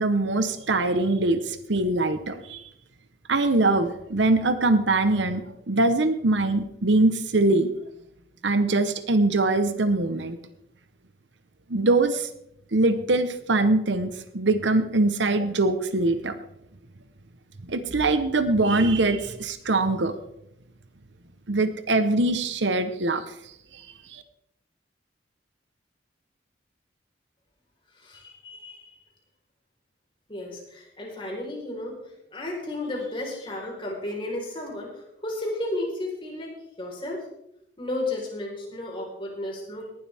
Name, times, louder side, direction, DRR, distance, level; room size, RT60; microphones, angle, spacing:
voice 1, 0.0-2.6 3.3-5.4 5.7-7.7 8.4-10.4 11.7-12.3 12.7-16.4 17.7-20.2 21.5-23.2 23.7-23.8 24.1-24.2, right 2 dB, 75° right, 11 dB, 1.0 m, -23 dB
voice 2, 28.0-28.9 30.3-32.0 32.3-36.5 36.8-37.2 37.8-39.9, left 1 dB, 30° left, -1 dB, 4.3 m, -33 dB
18.5 x 12.0 x 3.5 m, 0.78 s
head